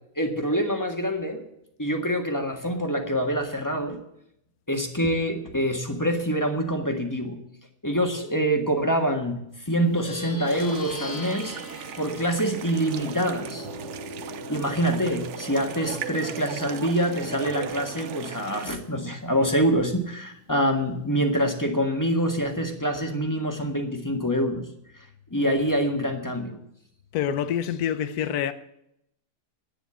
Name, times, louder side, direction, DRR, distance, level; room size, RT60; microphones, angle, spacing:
voice 1, 0.2-1.4 1.8-4.0 4.7-7.4 7.8-11.6 12.0-13.7 14.5-24.7 25.3-26.6, equal, 10° left, 1.5 m, -25 dB
Plucked string instrument, 9.8-19.6, left 3 dB, 90° left, 3.0 m, -42 dB
sound 1, 10.5-18.8, right 9 dB, 60° right, 0.8 m, -38 dB
voice 2, 27.1-28.5, left 9 dB, 70° left, 1.3 m, -26 dB
10.0 x 9.4 x 8.5 m
omnidirectional pair, 1.7 m